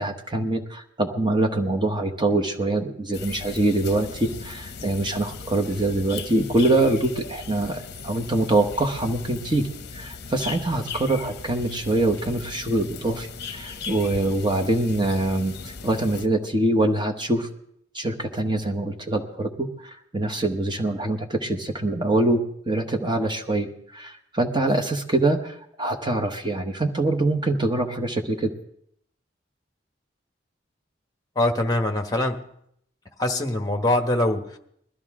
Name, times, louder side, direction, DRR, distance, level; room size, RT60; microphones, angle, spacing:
voice 1, 0.0-17.5 17.9-28.5, right 2 dB, 25° right, 4 dB, 1.1 m, -24 dB
sound 1, 3.1-16.3, left 5 dB, 55° left, 0.7 m, -38 dB
voice 2, 31.3-32.4 33.2-34.6, left 1 dB, 20° left, 5 dB, 1.1 m, -23 dB
21.0 x 13.0 x 3.7 m, 0.71 s
head